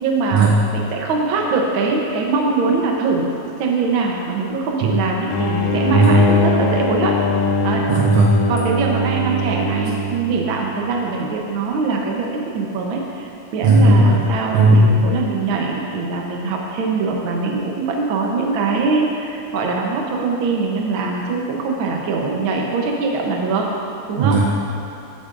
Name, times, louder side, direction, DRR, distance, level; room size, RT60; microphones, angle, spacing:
voice 1, 0.0-7.2 7.6-7.9 8.5-23.7 24.1-24.4, right 4 dB, 65° right, 0 dB, 1.3 m, -22 dB
sound 1, 5.3-10.7, left 1 dB, 75° left, 1.9 m, -21 dB
voice 2, 7.9-8.4 13.6-15.0 24.2-24.5, right 2 dB, 80° right, -1 dB, 1.5 m, -15 dB
14.0 x 7.6 x 2.6 m, 3.0 s
omnidirectional pair, 3.5 m